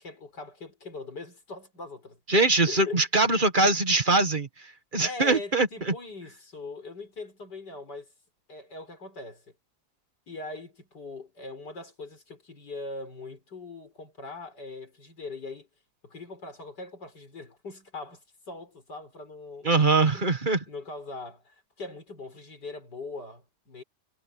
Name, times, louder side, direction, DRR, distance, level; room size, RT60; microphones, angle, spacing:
voice 1, 0.0-2.2 2.6-3.0 5.0-8.1 8.5-9.5 10.3-15.7 16.0-19.7 20.1-20.3 20.7-23.8, left 3 dB, 85° left, 5.9 m, -41 dB
voice 2, 2.3-4.5 4.9-5.9 19.6-20.6, right 3 dB, 30° right, 1.7 m, -22 dB
omnidirectional pair, 1.8 m